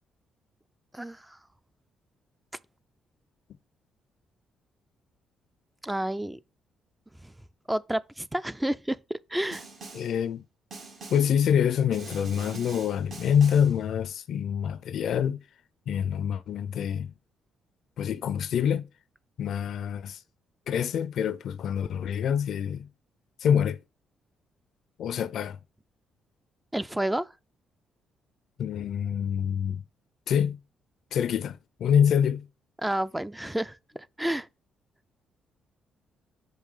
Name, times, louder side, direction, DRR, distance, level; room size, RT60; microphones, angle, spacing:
voice 1, 0.9-1.4 5.8-6.4 7.2-7.3 7.7-9.0 9.3-9.6 26.7-27.3 32.8-33.8 34.2-34.5, right 1 dB, 10° right, 0.3 m, -30 dB
Snare drum, 9.5-10.2 10.7-11.4 11.9-13.8, right 3 dB, 65° right, 1.6 m, -44 dB
voice 2, 9.9-10.4 11.1-15.4 15.9-17.1 18.0-18.9 19.4-20.2 20.7-22.9 23.4-23.8 25.0-25.6 28.6-29.8 30.3-30.6 31.1-32.5, left 8 dB, 70° left, 0.5 m, -26 dB
5.4 x 4.7 x 4.9 m
cardioid pair, 90°, 0 cm